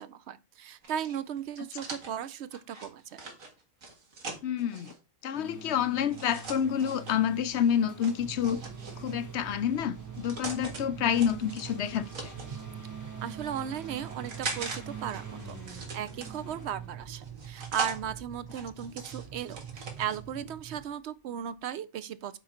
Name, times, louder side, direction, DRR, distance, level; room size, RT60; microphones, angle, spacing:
voice 1, 0.0-3.2 13.2-22.4, right 9 dB, 65° right, 0.8 m, -36 dB
ARiggs Knocking Coffee Lids Over, 0.8-5.0 6.1-7.2 8.0-9.2 9.9-10.8 11.1-12.6 13.3-14.8 15.1-16.6 17.2-18.0 18.5-20.2, right 3 dB, 80° right, 2.0 m, -41 dB
voice 2, 4.4-4.9 5.2-8.6 9.0-12.3, left 9 dB, 65° left, 0.8 m, -28 dB
sound 1, 5.3-17.6 19.3-19.4, right 4 dB, 15° right, 1.4 m, -47 dB
sound 2, 8.2-20.8, right 8 dB, 35° right, 0.9 m, -45 dB
8.7 x 3.8 x 4.3 m
omnidirectional pair, 1.4 m